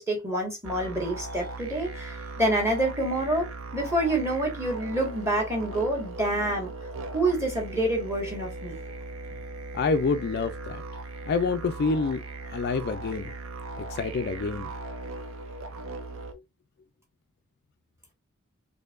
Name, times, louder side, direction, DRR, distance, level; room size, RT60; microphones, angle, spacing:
voice 1, 0.0-6.7 7.1-8.8, right 1 dB, 15° right, 1.4 m, -27 dB
sound 1, 0.6-16.3, right 3 dB, 65° right, 0.6 m, -38 dB
voice 2, 9.7-10.8 11.3-12.2 12.5-13.3 13.9-14.7, left 4 dB, 50° left, 0.3 m, -27 dB
4.4 x 2.7 x 2.3 m
head